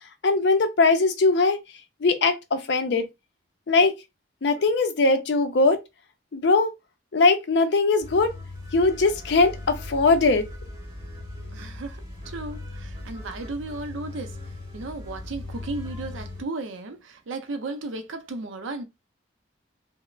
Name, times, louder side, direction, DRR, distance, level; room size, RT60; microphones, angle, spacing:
voice 1, 0.2-1.6 2.0-3.0 3.7-3.9 4.4-5.8 6.3-6.7 7.1-8.3 8.7-10.4, left 3 dB, 60° left, 0.5 m, -20 dB
sound 1, 8.0-16.4, left 2 dB, 20° right, 1.1 m, -39 dB
voice 2, 11.5-18.8, right 2 dB, 80° right, 0.5 m, -35 dB
2.4 x 2.0 x 3.0 m
head